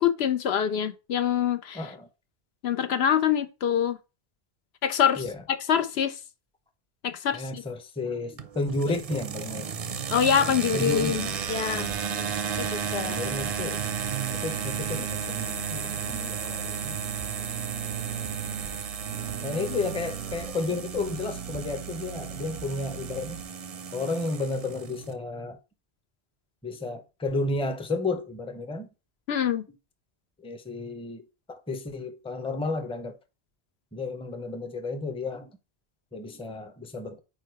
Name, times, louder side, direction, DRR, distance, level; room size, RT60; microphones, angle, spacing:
voice 1, 0.0-1.8 2.6-4.0 4.8-6.2 7.0-7.6 10.1-11.9 12.6-13.2 19.7-19.8 29.3-29.6, left 8 dB, 75° left, 0.9 m, -25 dB
voice 2, 1.7-2.1 5.2-5.4 7.3-9.7 10.4-11.3 11.7-12.3 13.0-13.8 14.3-17.0 19.4-23.4 23.9-25.6 26.6-28.9 30.4-31.2 31.5-33.2 33.9-35.5 36.1-37.2, left 3 dB, 5° left, 0.6 m, -32 dB
sound 1, 8.4-25.1, right 6 dB, 45° right, 0.5 m, -34 dB
sound 2, 11.0-23.4, right 9 dB, 85° right, 0.9 m, -39 dB
4.8 x 4.6 x 4.5 m
omnidirectional pair, 1.1 m